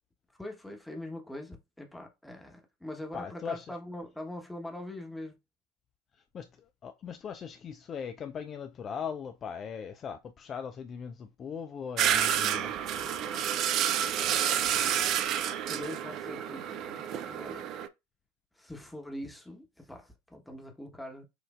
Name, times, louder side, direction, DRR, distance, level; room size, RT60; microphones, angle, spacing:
voice 1, 0.4-5.4 12.6-13.9 14.2-14.6 15.5-17.7 18.5-21.3, left 1 dB, 5° left, 1.1 m, -43 dB
voice 2, 3.1-3.7 6.3-12.7, left 7 dB, 35° left, 0.4 m, -39 dB
sound 1, 12.0-17.9, right 9 dB, 45° right, 0.4 m, -29 dB
6.2 x 2.5 x 2.4 m
figure-of-eight pair, 80°, 0 cm